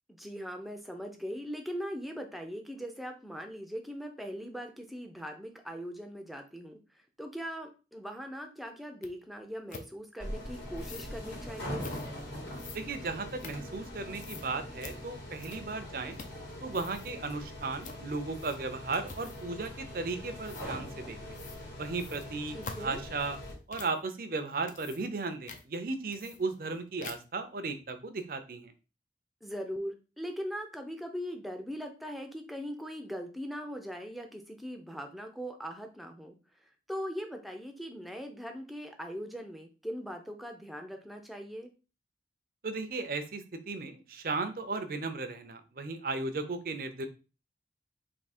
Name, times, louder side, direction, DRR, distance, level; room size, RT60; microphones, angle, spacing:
voice 1, 0.1-11.9 22.5-23.0 29.4-36.3 36.6-41.7, equal, ahead, 3 dB, 0.5 m, -40 dB
sound 1, 9.0-9.1 9.7-9.9 10.7-11.1 11.8-12.1 12.5-13.9 14.2-14.5 14.8-15.0 15.4-15.8 16.1-16.4 16.7-17.1 17.8-18.0 18.4-18.7 19.1-19.5 20.4-20.7 21.3-21.6 21.9-24.0 24.5-25.2 25.5-25.6 26.1-26.7 27.0-27.4, left 4 dB, 45° left, 0.5 m, -46 dB
sound 2, 10.2-23.5, left 1 dB, 75° left, 2.0 m, -42 dB
voice 2, 12.7-16.2 16.6-21.4 21.8-23.4 23.7-28.7 42.6-47.1, right 3 dB, 55° right, 8 dB, 0.6 m, -36 dB
3.5 x 2.8 x 4.2 m, 0.32 s
head